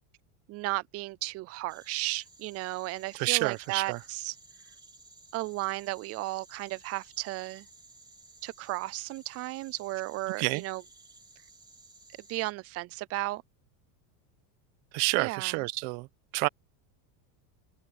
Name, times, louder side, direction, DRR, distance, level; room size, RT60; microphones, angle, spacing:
voice 1, 0.5-4.4 5.3-7.7 8.4-10.8 12.3-13.4 15.2-15.6, right 20 dB, 35° right, 0.4 m, -34 dB
sound 1, 1.7-12.5, right 3 dB, 10° right, 4.3 m, -56 dB
voice 2, 3.1-4.0 10.4-10.6 14.9-16.1 16.3-16.5, right 25 dB, 65° right, 1.2 m, -28 dB
open air
supercardioid pair, 145°, 46 cm